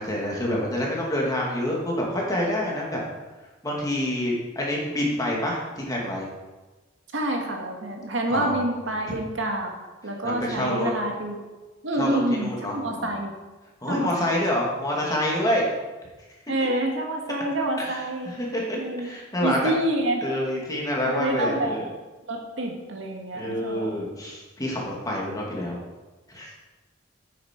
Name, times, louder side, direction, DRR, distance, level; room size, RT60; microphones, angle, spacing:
voice 1, 0.0-3.0 3.6-6.3 8.3-8.6 9.1-9.2 10.2-10.9 12.0-13.2 13.8-15.7 17.8-19.7 20.2-21.8 23.3-25.8 26.3-26.5, left 1 dB, 20° left, -3 dB, 2.2 m, -27 dB
voice 2, 7.1-9.7 10.0-11.4 11.8-13.3 13.9-14.3 16.5-18.3 18.7-19.1 19.4-20.3 21.0-21.8 22.3-23.9, right 1 dB, 85° right, 1 dB, 1.8 m, -27 dB
9.5 x 8.7 x 4.5 m, 1.2 s
head